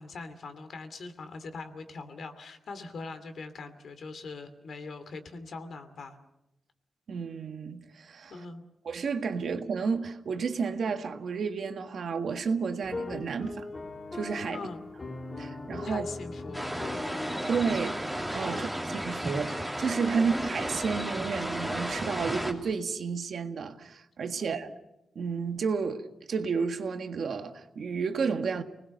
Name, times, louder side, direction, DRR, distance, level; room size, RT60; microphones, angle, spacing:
voice 1, 0.0-6.2 8.3-8.6 14.5-14.8 15.8-16.8 18.5-18.7 20.1-20.3 24.4-24.6, left 3 dB, 60° left, 2.6 m, -42 dB
voice 2, 7.1-8.4 8.8-13.7 14.1-14.6 15.4-16.1 17.5-18.0 18.3-24.7 25.1-28.6, right 5 dB, 60° right, 1.7 m, -31 dB
sound 1, 12.8-18.7, left 3 dB, 25° left, 1.9 m, -40 dB
sound 2, 16.5-22.5, right 1 dB, ahead, 2.8 m, -33 dB
30.0 x 20.0 x 6.5 m
wide cardioid pair, 155°, 0 cm